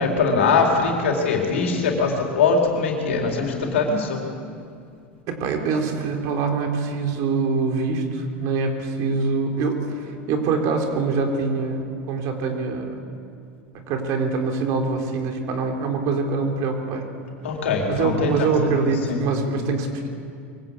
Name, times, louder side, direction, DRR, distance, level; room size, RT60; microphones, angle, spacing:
voice 1, 0.0-4.2 17.4-19.2, left 4 dB, 85° left, 0 dB, 4.3 m, -22 dB
voice 2, 5.3-13.0 13.9-17.1 17.8-20.1, right 4 dB, 55° right, 3 dB, 3.7 m, -24 dB
23.5 x 17.0 x 8.3 m, 2.3 s
hypercardioid pair, 100°, 7 cm